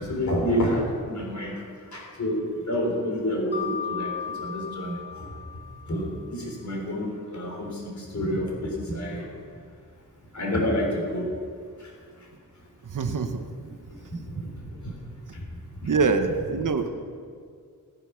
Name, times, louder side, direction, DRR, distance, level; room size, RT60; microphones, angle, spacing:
voice 1, 0.0-1.6 1.9-4.1 4.4-5.2 5.9-9.3 10.3-11.3 11.8-11.9 14.3-14.9 15.3-15.4 15.8-15.9, equal, 55° left, -1 dB, 3.7 m, -29 dB
Mallet percussion, 3.5-6.3, left 7 dB, 30° left, 2.1 m, -35 dB
voice 2, 12.8-13.7 14.4-14.5 15.8-16.9, right 4 dB, 65° right, 7 dB, 1.1 m, -25 dB
16.5 x 9.5 x 5.8 m, 2.2 s
wide cardioid pair, 125°, 34 cm